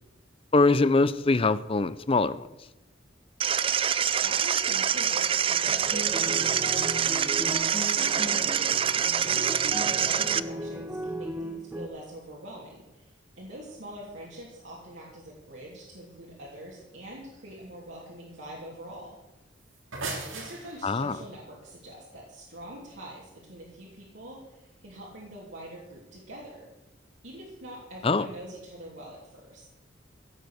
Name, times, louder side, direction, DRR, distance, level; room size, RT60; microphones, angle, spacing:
voice 1, 0.5-2.5 20.8-21.2 28.0-28.3, left 3 dB, 30° left, 16 dB, 0.5 m, -23 dB
sound 1, 3.4-10.4, right 8 dB, 25° right, 0.4 m, -25 dB
voice 2, 4.2-7.2 8.0-8.7 9.2-19.2 20.3-26.7 27.2-29.7, right 1 dB, 70° right, -5 dB, 3.1 m, -44 dB
sound 2, 5.7-11.9, equal, 10° right, 0.8 m, -36 dB
sound 3, 19.6-21.1, right 3 dB, 85° right, 3.1 m, -37 dB
16.5 x 8.1 x 6.5 m, 1.0 s
head